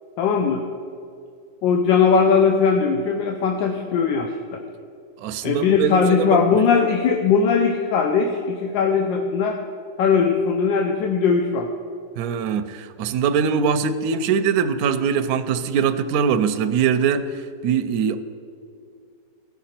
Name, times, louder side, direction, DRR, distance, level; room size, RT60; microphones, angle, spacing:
voice 1, 0.2-0.6 1.6-4.6 5.4-9.6 10.0-11.7, left 5 dB, 85° left, 4 dB, 1.4 m, -19 dB
voice 2, 5.2-6.6 12.2-17.3 17.6-18.2, right 6 dB, 70° right, 9 dB, 0.9 m, -22 dB
16.0 x 5.9 x 4.3 m, 2.4 s
omnidirectional pair, 1.9 m